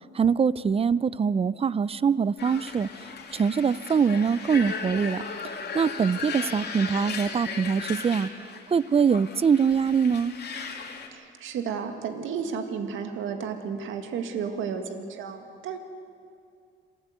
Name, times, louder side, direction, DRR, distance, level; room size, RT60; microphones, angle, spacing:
voice 1, 0.1-2.9 3.3-5.2 5.7-8.3 8.7-10.3, right 6 dB, 30° right, 19 dB, 0.5 m, -23 dB
sound 1, 2.4-11.1, left 5 dB, 55° left, 2.6 m, -37 dB
voice 2, 11.1-15.8, right 6 dB, 80° right, 6 dB, 1.9 m, -32 dB
26.5 x 14.0 x 8.1 m, 2.4 s
cardioid pair, 90°, 20 cm